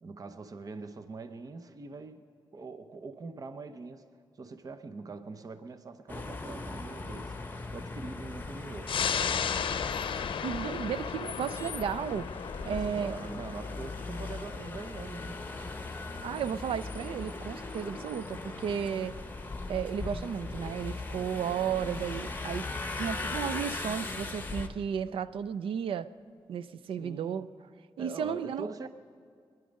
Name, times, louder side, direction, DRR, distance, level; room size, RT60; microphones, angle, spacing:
voice 1, 0.0-2.2 2.5-4.1 4.4-9.0 12.7-15.7 27.0-27.5 28.0-28.9, right 4 dB, 40° right, 10 dB, 0.7 m, -43 dB
sound 1, 6.1-24.7, left 3 dB, 20° left, 0.9 m, -39 dB
sound 2, 8.9-19.8 20.2-20.3, left 7 dB, 70° left, 0.6 m, -37 dB
voice 2, 10.4-12.3 12.6-13.1 16.2-19.1 19.7-22.7 23.0-26.1 26.5-27.5 28.0-28.9, right 8 dB, 90° right, 15 dB, 0.4 m, -34 dB
23.0 x 10.5 x 5.3 m, 2.3 s
wide cardioid pair, 105°, 9 cm